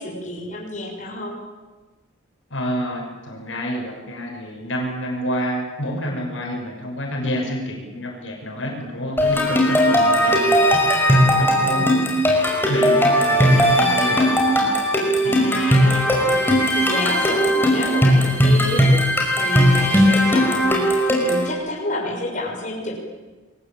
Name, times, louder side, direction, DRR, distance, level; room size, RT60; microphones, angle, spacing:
voice 1, 0.0-1.4 11.5-12.0 15.2-19.0 19.3-22.9, left 1 dB, 40° left, -1 dB, 6.1 m, -29 dB
voice 2, 2.5-12.0 12.7-14.7 15.2-15.6, equal, 75° left, 1 dB, 6.5 m, -29 dB
sound 1, 9.2-21.5, equal, 10° left, 5.5 m, -18 dB
28.5 x 22.0 x 8.9 m, 1.3 s
head